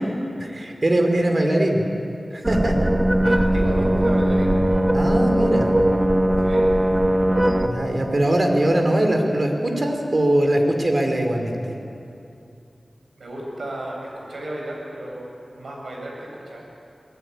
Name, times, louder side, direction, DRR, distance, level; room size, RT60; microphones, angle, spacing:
voice 1, 0.4-1.8 2.3-2.9 4.9-5.7 7.6-11.7, right 1 dB, 45° right, 3 dB, 4.6 m, -21 dB
sound 1, 2.4-7.7, right 1 dB, 20° right, 1.9 m, -19 dB
voice 2, 3.2-4.6 6.4-6.8 13.2-15.3 15.5-16.8, right 1 dB, 85° right, -2 dB, 8.0 m, -33 dB
24.5 x 19.5 x 9.8 m, 2.7 s
wide cardioid pair, 55°, 0 cm